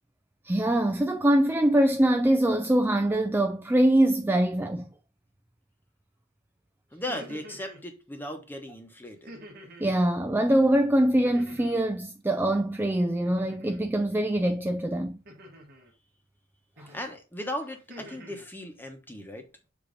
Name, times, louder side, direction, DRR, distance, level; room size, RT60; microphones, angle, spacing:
voice 1, 0.4-4.9 9.8-15.2 16.8-16.9, right 1 dB, 10° right, 0.3 m, -23 dB
voice 2, 6.9-9.3 16.9-19.5, left 1 dB, 10° left, 1.1 m, -37 dB
sound 1, 6.9-7.8 9.3-9.9 11.2-11.9 13.2-13.8 15.3-15.9 16.8-17.1 17.6-18.4, equal, 50° right, 1.7 m, -47 dB
7.1 x 2.9 x 5.1 m
head